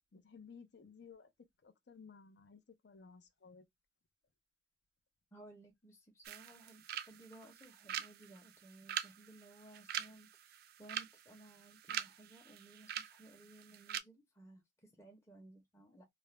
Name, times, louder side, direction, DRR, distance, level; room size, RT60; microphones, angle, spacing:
voice 1, 0.1-1.3 1.6-3.7, left 5 dB, 70° left, 0.5 m, -57 dB
voice 2, 5.3-16.1, right 1 dB, 15° left, 0.7 m, -59 dB
sound 1, 6.2-14.0, right 10 dB, 60° right, 0.3 m, -45 dB
2.4 x 2.1 x 3.0 m
head